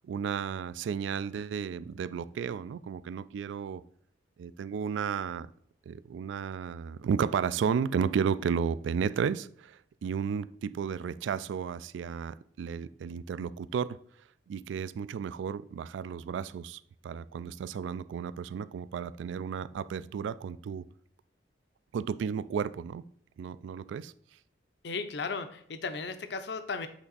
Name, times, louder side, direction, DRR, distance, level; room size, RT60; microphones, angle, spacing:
voice 1, 0.0-3.8 4.4-5.5 5.9-14.0 14.5-20.8 21.9-23.1 23.4-24.1, right 7 dB, 85° right, 17 dB, 0.3 m, -33 dB
voice 2, 24.8-26.9, left 4 dB, 65° left, 9 dB, 0.6 m, -35 dB
8.1 x 3.4 x 3.9 m, 0.65 s
head